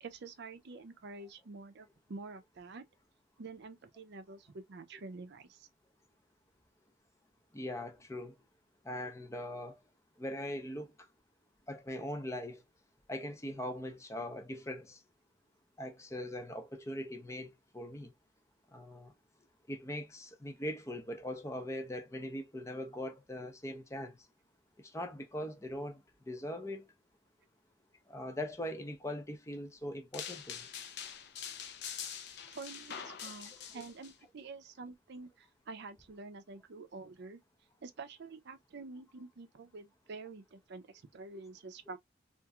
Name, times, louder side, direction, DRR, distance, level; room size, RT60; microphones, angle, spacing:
voice 1, 0.0-2.9 3.4-5.7 32.5-37.4 37.8-40.9 41.1-42.0, right 3 dB, 60° right, 0.5 m, -48 dB
voice 2, 7.5-8.3 8.8-9.8 10.2-10.9 11.7-12.6 13.1-15.0 15.8-18.1 18.7-19.1 19.7-24.2 24.8-26.9 28.1-30.7, left 1 dB, 15° left, 0.5 m, -41 dB
sound 1, 30.1-34.1, left 8 dB, 60° left, 0.6 m, -44 dB
2.9 x 2.5 x 2.3 m
head